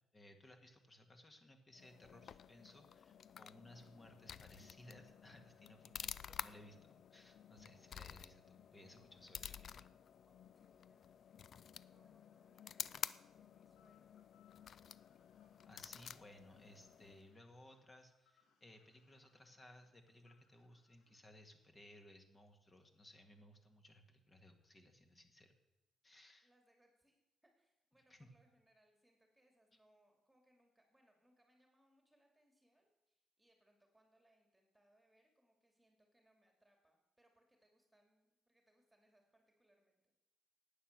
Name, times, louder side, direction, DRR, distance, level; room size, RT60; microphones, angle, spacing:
voice 1, 0.1-9.9 15.7-25.5 26.0-26.5 28.1-28.3, left 1 dB, 25° left, 5 dB, 1.9 m, -61 dB
Stanley Knife, 1.8-17.3, left 8 dB, 60° left, 0.4 m, -51 dB
voice 2, 10.3-11.5 11.8-14.3 26.4-40.1, right 1 dB, 10° right, 2 dB, 2.4 m, -76 dB
sound 1, 13.8-21.2, left 8 dB, 80° left, 1.8 m, -77 dB
11.0 x 9.0 x 6.7 m, 0.99 s
cardioid pair, 90°, 0 cm